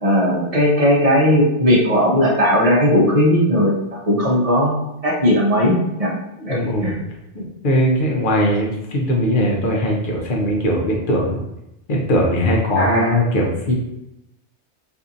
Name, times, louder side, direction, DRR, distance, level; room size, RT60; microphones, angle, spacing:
voice 1, 0.0-6.1 6.5-7.0 12.8-13.2, equal, 40° right, -4 dB, 0.6 m, -17 dB
voice 2, 6.4-7.0 7.3-11.4 11.9-13.7, equal, 60° left, -1 dB, 0.7 m, -20 dB
2.7 x 2.5 x 2.4 m, 0.86 s
omnidirectional pair, 1.1 m